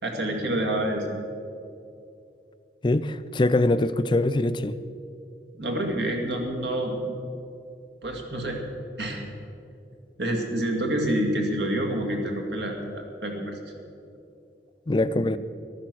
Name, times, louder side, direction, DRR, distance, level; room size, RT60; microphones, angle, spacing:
voice 1, 0.0-1.1 5.5-7.2 8.0-8.6 9.0-9.2 10.2-13.6, right 1 dB, 80° right, 2 dB, 2.2 m, -28 dB
voice 2, 2.8-4.8 14.9-15.4, left 2 dB, 25° left, 13 dB, 0.4 m, -23 dB
14.5 x 12.5 x 6.2 m, 2.6 s
head